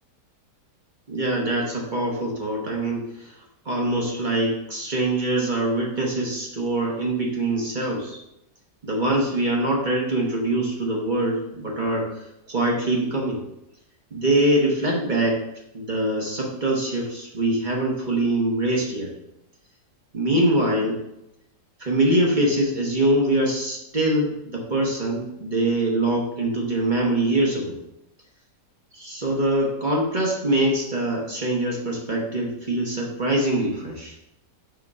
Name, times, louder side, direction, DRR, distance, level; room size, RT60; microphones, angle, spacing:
voice 1, 1.1-3.4 3.6-8.2 8.8-12.1 12.5-13.4 14.1-15.4 15.7-19.1 20.1-21.0 21.8-27.8 28.9-34.2, right 1 dB, 30° right, -2 dB, 1.1 m, -23 dB
6.1 x 3.7 x 5.4 m, 0.86 s
omnidirectional pair, 1.8 m